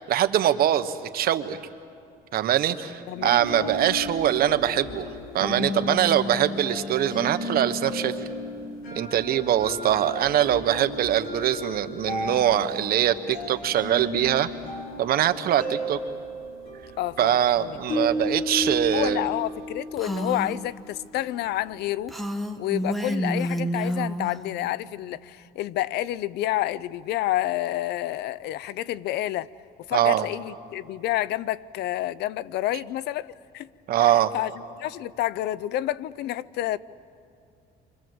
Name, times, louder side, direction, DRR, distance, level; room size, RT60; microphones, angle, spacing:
voice 1, 0.0-1.6 2.3-5.0 5.3-8.1 8.9-14.5 15.0-16.0 17.2-19.2 29.9-30.3 33.9-34.3, right 11 dB, 65° right, 10 dB, 1.2 m, -23 dB
voice 2, 3.1-3.7 17.0-17.8 18.9-22.1 22.6-29.5 29.9-33.7 34.0-34.5 34.8-36.8, left 14 dB, 75° left, 20 dB, 0.6 m, -29 dB
sound 1, 3.1-21.2, left 1 dB, 60° left, 7.1 m, -34 dB
Female speech woman speaking, 20.0-20.6 22.1-24.4, equal, ahead, 1.6 m, -29 dB
29.0 x 25.0 x 7.9 m, 2.5 s
cardioid pair, 110°, 17 cm